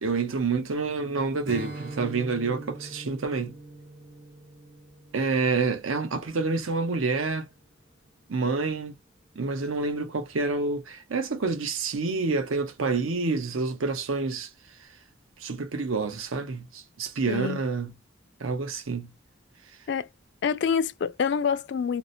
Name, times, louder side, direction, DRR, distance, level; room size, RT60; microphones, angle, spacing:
voice 1, 0.0-3.5 5.1-7.5 8.3-9.0 9.4-14.5 15.4-17.9 18.4-19.1, right 4 dB, 90° right, 0.7 m, -28 dB
Strum, 1.4-6.9, right 2 dB, 55° right, 0.9 m, -43 dB
voice 2, 17.3-17.6 19.9-20.1 20.4-22.0, left 6 dB, 55° left, 0.3 m, -26 dB
2.7 x 2.0 x 2.5 m
head